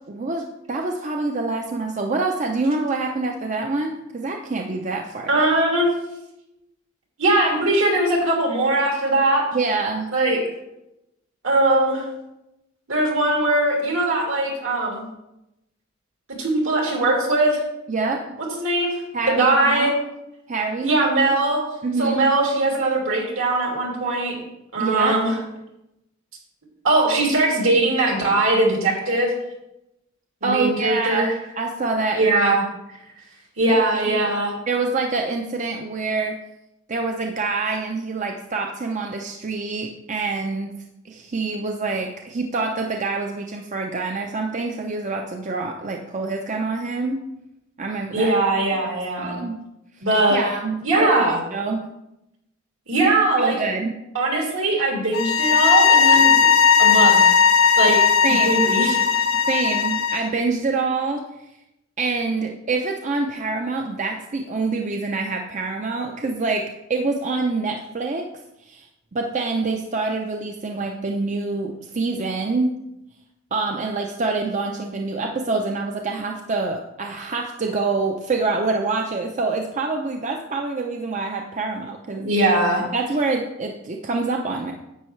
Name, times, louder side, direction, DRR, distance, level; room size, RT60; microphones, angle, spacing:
voice 1, 0.1-5.5 9.5-10.1 17.9-18.3 19.1-19.9 20.5-20.9 21.8-22.2 24.8-25.2 30.4-32.5 33.7-33.8 34.1-34.3 34.7-36.4 36.9-40.8 41.0-47.2 47.8-48.3 49.2-49.6 50.3-51.9 53.4-54.0 58.2-58.7 59.5-61.2 62.0-68.3 68.6-68.9 69.1-72.7 73.5-82.6 82.9-84.7, right 3 dB, 40° right, 2 dB, 0.6 m, -26 dB
voice 2, 5.3-5.9 7.2-9.4 10.1-10.4 11.4-12.1 12.9-15.0 16.4-17.6 18.6-19.9 20.8-21.6 22.0-24.4 24.7-25.4 26.8-29.3 30.4-31.3 32.1-32.7 33.6-34.5 48.1-49.4 50.0-50.4 50.8-51.4 52.9-53.6 54.1-57.3 57.8-58.0 58.3-59.3 82.2-82.9, right 2 dB, 75° right, -1 dB, 2.8 m, -20 dB
sound 1, 55.1-60.3, left 6 dB, 85° left, 0.7 m, -16 dB
10.0 x 8.0 x 3.2 m, 0.89 s
head